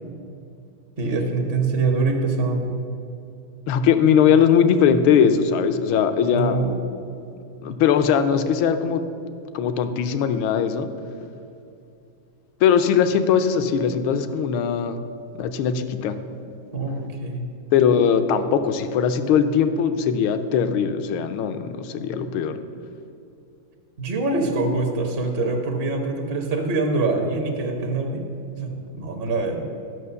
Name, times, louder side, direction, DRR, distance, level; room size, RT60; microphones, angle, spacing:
voice 1, 1.0-2.8 6.3-6.8 16.7-17.5 24.0-28.2 28.5-29.7, right 3 dB, 45° right, 2 dB, 0.8 m, -24 dB
voice 2, 3.7-6.6 7.6-9.1 9.5-10.9 12.6-15.0 15.3-16.1 17.7-22.6, left 7 dB, 80° left, 9 dB, 1.4 m, -20 dB
11.0 x 5.9 x 6.8 m, 2.6 s
omnidirectional pair, 2.3 m